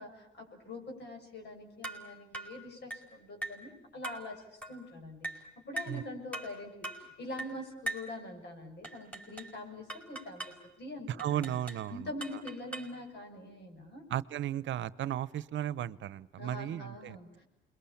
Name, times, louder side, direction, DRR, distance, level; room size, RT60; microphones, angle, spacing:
voice 1, 0.0-11.6 11.9-14.0 16.4-17.4, left 2 dB, 60° left, 3 dB, 7.0 m, -44 dB
sound 1, 1.8-2.1 2.3-2.6 2.9-3.1 3.4-3.7 4.0-4.3 4.6-4.8 5.2-5.5 5.8-6.0 6.3-6.6 6.8-7.1 7.4-7.6 7.9-8.1 8.8-9.6 9.9-10.6 11.2-11.9 12.2-13.0, right 2 dB, 5° left, 4.5 m, -41 dB
voice 2, 11.1-12.1 14.1-17.2, right 11 dB, 70° right, 19 dB, 0.9 m, -35 dB
28.0 x 22.0 x 8.6 m, 0.90 s
cardioid pair, 90°, 20 cm